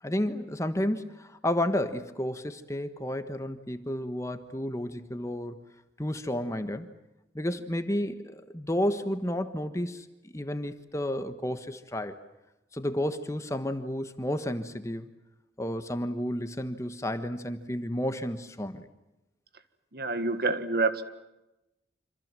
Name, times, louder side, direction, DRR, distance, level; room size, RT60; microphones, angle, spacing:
voice 1, 0.0-5.6 6.0-6.9 7.3-10.1 10.3-12.2 12.7-15.1 15.6-18.9, left 1 dB, 15° left, 9 dB, 1.3 m, -31 dB
voice 2, 19.9-21.0, right 3 dB, 55° right, 10 dB, 1.8 m, -27 dB
27.0 x 26.5 x 7.6 m, 0.94 s
head